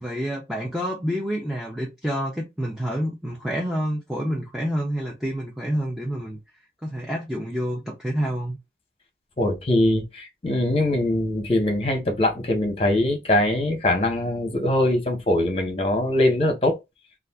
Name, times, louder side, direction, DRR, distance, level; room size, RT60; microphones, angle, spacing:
voice 1, 0.0-6.4 6.8-8.6, equal, 5° right, 0.5 m, -28 dB
voice 2, 9.4-16.8, left 1 dB, 35° left, 0.9 m, -22 dB
2.4 x 2.4 x 3.4 m
head